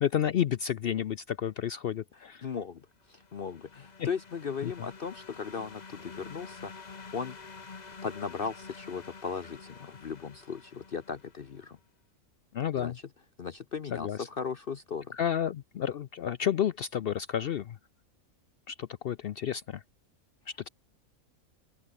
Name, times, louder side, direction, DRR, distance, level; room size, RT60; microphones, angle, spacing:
voice 1, 0.0-2.4 4.0-4.1 4.6-4.7 12.5-12.9 13.9-14.2 15.1-17.8 18.7-19.8, left 9 dB, 65° left, 0.6 m, -31 dB
voice 2, 2.4-7.4 8.0-11.8 12.7-12.9 13.4-15.1, left 6 dB, 45° left, 0.9 m, -37 dB
sound 1, 3.0-11.6, left 4 dB, 30° left, 1.3 m, -48 dB
open air
omnidirectional pair, 1.5 m